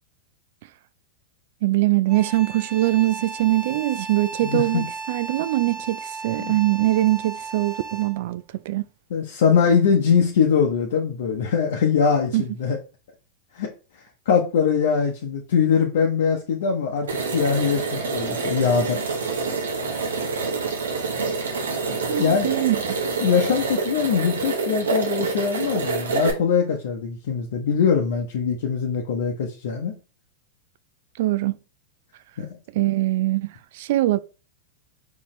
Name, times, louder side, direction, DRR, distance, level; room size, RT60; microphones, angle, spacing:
voice 1, 1.6-8.8 12.3-12.4 22.1-22.8 31.2-31.6 32.7-34.2, right 16 dB, 65° right, 0.3 m, -22 dB
sound 1, 2.1-8.3, right 4 dB, 30° right, 0.9 m, -35 dB
voice 2, 4.4-4.8 6.4-6.5 9.1-12.8 13.5-13.7 14.3-17.1 17.3-19.0 21.9-22.5 23.2-29.9 32.4-32.6, left 6 dB, 70° left, 0.8 m, -22 dB
sound 2, 17.1-26.3, right 4 dB, 90° right, 1.0 m, -27 dB
4.1 x 3.1 x 3.1 m
hypercardioid pair, 115°, 0 cm